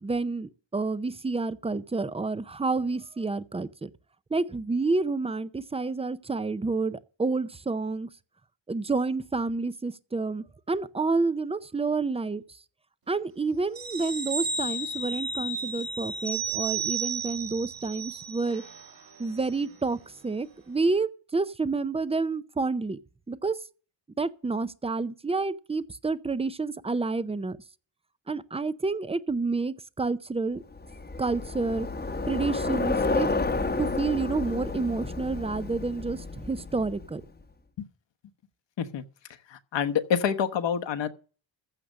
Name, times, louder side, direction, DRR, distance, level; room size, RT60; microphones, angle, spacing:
voice 1, 0.0-3.9 4.3-8.1 8.7-12.4 13.1-18.6 19.2-23.0 23.3-23.6 24.2-27.6 28.3-30.6 31.2-31.9 32.3-33.3 33.8-37.2, right 3 dB, 15° right, 0.5 m, -29 dB
sound 1, 13.8-18.9 19.2-19.3, right 4 dB, 45° right, 1.7 m, -33 dB
Bicycle, 30.7-37.2, left 3 dB, 20° left, 1.0 m, -31 dB
voice 2, 39.5-41.1, left 7 dB, 65° left, 1.2 m, -27 dB
15.0 x 6.7 x 6.3 m
wide cardioid pair, 165°, 47 cm